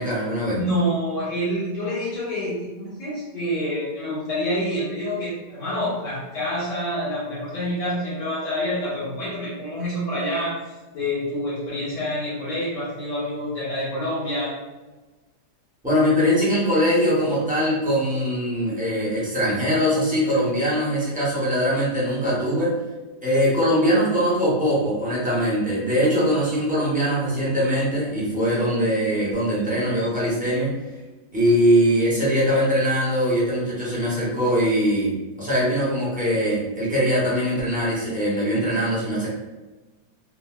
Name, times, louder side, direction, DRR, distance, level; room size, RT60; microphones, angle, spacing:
voice 1, 0.0-0.6 15.8-22.7 23.2-30.8 31.3-39.3, equal, 10° right, -9 dB, 0.4 m, -22 dB
voice 2, 0.5-10.6 10.9-14.5, equal, 90° left, -12 dB, 1.9 m, -27 dB
3.8 x 2.0 x 2.3 m, 1.2 s
omnidirectional pair, 1.8 m